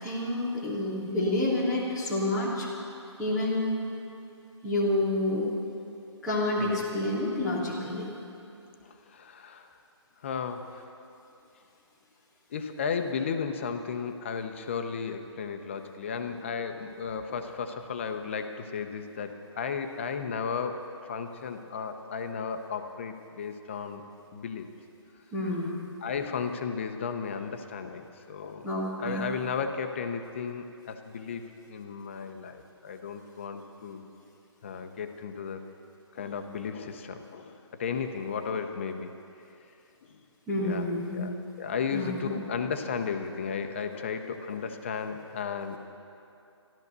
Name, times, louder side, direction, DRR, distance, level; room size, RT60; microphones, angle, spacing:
voice 1, 0.0-2.7 3.2-3.7 4.6-5.6 6.2-8.1 25.3-25.8 28.6-29.2 40.5-41.3 41.9-42.3, left 1 dB, ahead, -12 dB, 0.3 m, -29 dB
voice 2, 8.8-9.7 10.2-10.9 12.5-24.0 24.3-24.7 25.5-25.6 26.0-28.7 29.0-34.1 34.6-35.6 36.1-39.1 40.1-40.2 40.6-45.8, left 6 dB, 25° left, 7 dB, 0.7 m, -34 dB
13.5 x 12.5 x 6.7 m, 2.7 s
hypercardioid pair, 170°, 15 cm